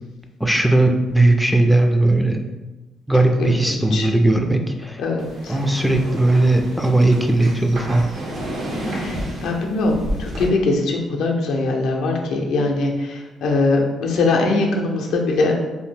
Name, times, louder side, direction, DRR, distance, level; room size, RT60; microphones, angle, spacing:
voice 1, 0.4-2.4 3.1-5.0 5.5-8.1, right 2 dB, ahead, 4 dB, 0.3 m, -17 dB
voice 2, 3.4-4.1 5.0-5.6 9.0-15.5, left 3 dB, 80° left, 1 dB, 0.5 m, -22 dB
sound 1, 5.2-10.5, equal, 70° right, 0.7 m, -30 dB
2.7 x 2.1 x 3.5 m, 1.1 s
cardioid pair, 90°, 0 cm